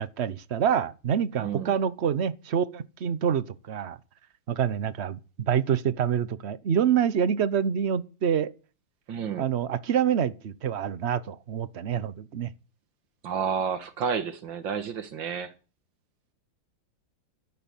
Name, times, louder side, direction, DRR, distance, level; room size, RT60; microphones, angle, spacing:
voice 1, 0.0-4.0 4.5-8.5 9.4-12.5, right 8 dB, 50° right, 0.8 m, -26 dB
voice 2, 1.4-1.7 9.1-9.5 13.2-15.5, right 7 dB, 70° right, 2.1 m, -30 dB
13.5 x 10.0 x 8.9 m
omnidirectional pair, 2.2 m